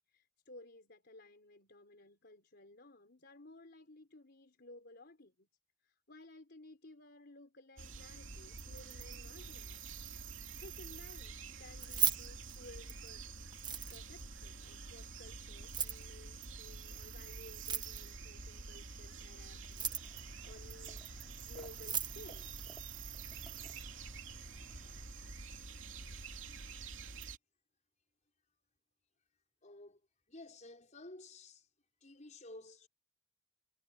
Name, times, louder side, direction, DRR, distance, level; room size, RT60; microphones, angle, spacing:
voice 1, 0.1-5.5 5.8-9.8 10.6-13.2 13.9-22.5, left 2 dB, 55° left, 3.9 m, -57 dB
sound 1, 7.8-27.4, right 4 dB, 70° right, 3.0 m, -48 dB
Keys jangling, 11.7-13.1 13.5-14.2 15.6-16.1 17.5-18.2 19.6-20.2 21.4-21.5 21.7-22.2, right 8 dB, 20° right, 1.3 m, -36 dB
sound 2, 19.9-25.1, equal, ahead, 4.8 m, -61 dB
voice 2, 29.6-30.0 30.3-31.7 32.0-32.9, left 2 dB, 35° left, 5.4 m, -53 dB
head